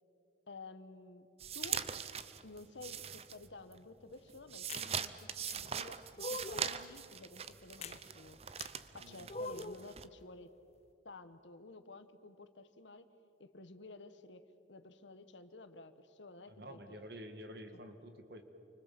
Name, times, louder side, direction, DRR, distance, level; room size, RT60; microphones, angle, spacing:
voice 1, 0.5-1.3 1.5-1.9 2.4-8.4 8.9-10.5 11.0-13.1 13.4-17.0 17.7-17.8, left 3 dB, 85° left, 10 dB, 1.4 m, -53 dB
sound 1, 1.4-3.8 4.1-10.1, right 7 dB, 35° right, 0.7 m, -42 dB
sound 2, 4.7-4.9 5.5-5.6 6.2-6.7 7.8-8.0 8.6-8.7 9.3-9.9, left 2 dB, 35° left, 0.6 m, -42 dB
voice 2, 16.6-18.4, equal, 60° right, 7 dB, 2.1 m, -49 dB
29.5 x 24.5 x 7.7 m, 3.0 s
head